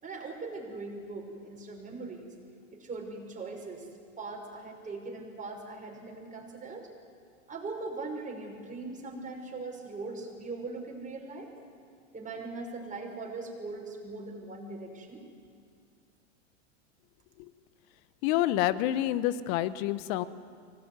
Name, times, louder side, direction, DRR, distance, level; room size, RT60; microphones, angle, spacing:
voice 1, 0.0-2.3 2.7-3.9 4.2-6.9 7.5-11.5 12.1-15.2, right 3 dB, 20° right, 0 dB, 6.0 m, -40 dB
voice 2, 18.2-20.2, left 13 dB, 55° left, 15 dB, 1.3 m, -28 dB
24.0 x 19.0 x 9.7 m, 2.3 s
hypercardioid pair, 105°, 37 cm